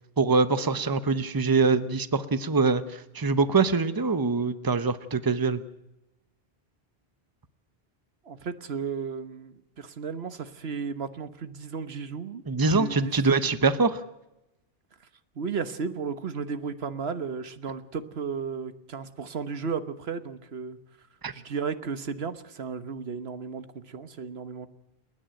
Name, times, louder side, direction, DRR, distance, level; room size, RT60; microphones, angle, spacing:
voice 1, 0.2-5.6 12.5-14.0 21.2-21.3, right 4 dB, 20° right, 12 dB, 0.9 m, -24 dB
voice 2, 8.2-13.1 15.3-20.8 21.3-24.7, right 5 dB, 75° right, 11 dB, 1.4 m, -34 dB
29.0 x 9.8 x 9.0 m, 0.92 s
omnidirectional pair, 1.1 m